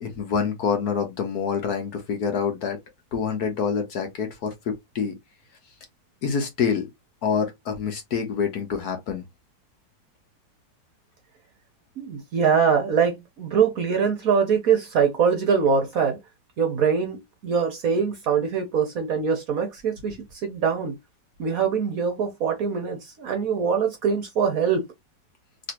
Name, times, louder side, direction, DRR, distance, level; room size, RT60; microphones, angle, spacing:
voice 1, 0.0-2.8 3.1-5.1 6.2-6.9 7.2-9.2, left 6 dB, 60° left, 1.2 m, -26 dB
voice 2, 12.0-16.2 16.6-21.0 21.4-24.9, right 6 dB, 60° right, 1.0 m, -23 dB
3.2 x 2.9 x 2.8 m
omnidirectional pair, 2.1 m